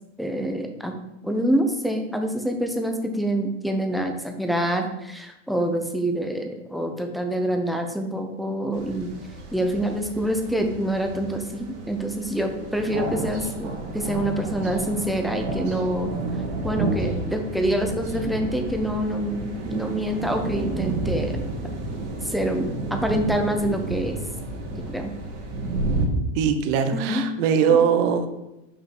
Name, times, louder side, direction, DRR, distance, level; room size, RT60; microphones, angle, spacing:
voice 1, 0.2-0.9 1.2-9.1 9.5-16.1 16.6-21.4 22.2-24.2 24.7-25.1 26.9-27.2, right 1 dB, ahead, 4 dB, 0.5 m, -26 dB
sound 1, 8.7-26.1, right 2 dB, 60° right, 2.1 m, -31 dB
voice 2, 26.3-28.3, right 7 dB, 45° right, 8 dB, 0.9 m, -21 dB
6.1 x 5.2 x 4.5 m, 0.91 s
supercardioid pair, 135°, 37 cm